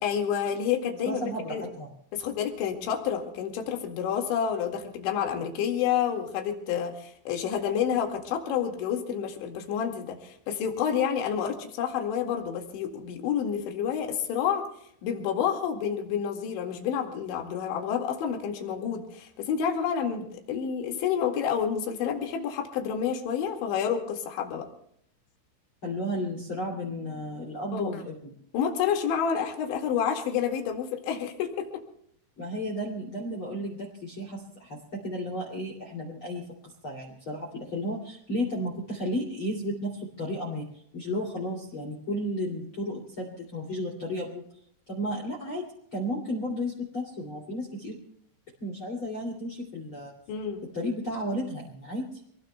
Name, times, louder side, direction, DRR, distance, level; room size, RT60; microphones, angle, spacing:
voice 1, 0.0-1.2 1.5-1.6 2.1-14.7 15.0-24.7 27.7-28.0 28.5-31.8 50.3-50.6, left 8 dB, 75° left, 2 dB, 4.2 m, -29 dB
voice 2, 1.0-1.9 25.8-28.4 32.4-34.8 35.0-36.4 36.8-40.6 40.9-44.4 44.9-45.6 45.9-48.0 48.6-50.1 50.7-52.1, equal, 35° left, -1 dB, 2.9 m, -33 dB
27.0 x 20.0 x 2.3 m, 0.68 s
omnidirectional pair, 5.4 m